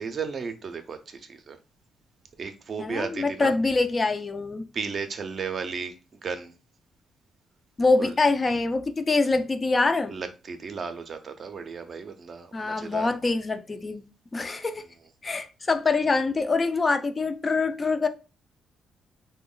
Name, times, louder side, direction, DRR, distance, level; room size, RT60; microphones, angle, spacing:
voice 1, 0.0-1.6 2.4-3.5 4.7-5.9 6.2-6.5 8.0-8.1 10.1-13.1, right 5 dB, 45° right, 0.5 m, -34 dB
voice 2, 2.8-4.7 7.8-10.1 12.5-14.0 14.3-14.9 15.2-18.1, left 3 dB, 30° left, 0.4 m, -25 dB
3.0 x 2.1 x 3.8 m
cardioid pair, 90°, 0 cm